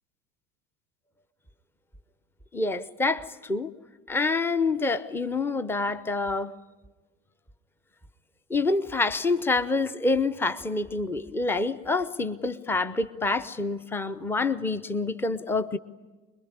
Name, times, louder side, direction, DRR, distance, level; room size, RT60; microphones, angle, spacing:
voice 1, 2.5-3.7 4.1-6.5 8.5-15.8, left 3 dB, 5° left, 0.8 m, -27 dB
25.0 x 22.0 x 9.7 m
figure-of-eight pair, 75°, 43 cm